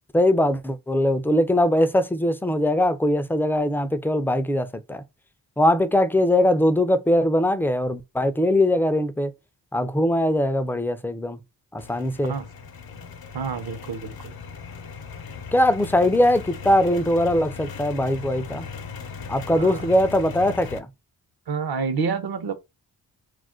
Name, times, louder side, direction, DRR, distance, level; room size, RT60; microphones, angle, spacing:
voice 1, 0.1-5.0 5.6-9.3 9.7-11.4 11.7-12.4 15.5-18.7 19.3-20.9, left 1 dB, 5° left, 0.3 m, -21 dB
sound 1, 11.8-20.8, left 5 dB, 60° left, 0.6 m, -38 dB
voice 2, 13.3-14.3 19.5-19.9 21.5-22.5, right 5 dB, 60° right, 0.7 m, -28 dB
2.4 x 2.1 x 3.6 m
cardioid pair, 55°, 42 cm